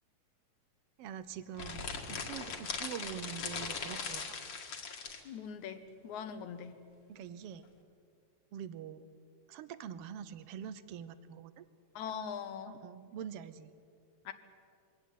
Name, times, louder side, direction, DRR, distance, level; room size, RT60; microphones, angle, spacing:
voice 1, 1.0-4.4 7.1-7.7 8.5-9.0 9.5-11.6 12.6-13.7, right 8 dB, 70° right, 14 dB, 1.5 m, -45 dB
sound 1, 1.5-5.2, left 5 dB, 50° left, 2.4 m, -40 dB
voice 2, 5.3-6.8 12.0-12.8 14.3-14.4, left 7 dB, 75° left, 9 dB, 2.4 m, -41 dB
23.0 x 17.0 x 9.3 m, 2.3 s
omnidirectional pair, 3.5 m